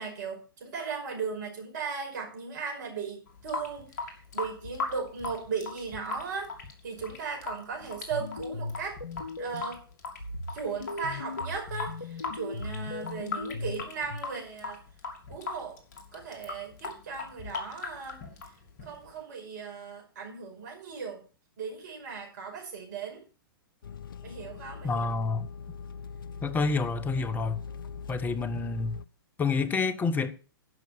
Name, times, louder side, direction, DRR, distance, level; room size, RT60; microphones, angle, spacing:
voice 1, 0.0-6.5 6.8-9.0 9.4-9.8 10.5-14.8 15.3-15.8 16.1-18.2 18.8-21.2 21.6-23.2 24.2-25.1, right 5 dB, 50° right, 5.4 m, -37 dB
Water tap faucet / Sink (filling or washing) / Drip, 3.3-19.2, left 4 dB, 45° left, 2.5 m, -39 dB
sound 1, 7.8-9.8 10.2-14.2, left 3 dB, 80° left, 1.0 m, -38 dB
sound 2, 23.8-29.1, left 6 dB, 65° left, 0.6 m, -41 dB
voice 2, 24.8-25.5 26.4-27.6 28.1-28.9 29.4-30.3, left 4 dB, 15° left, 1.0 m, -28 dB
11.0 x 6.2 x 6.8 m
figure-of-eight pair, 110°, 12 cm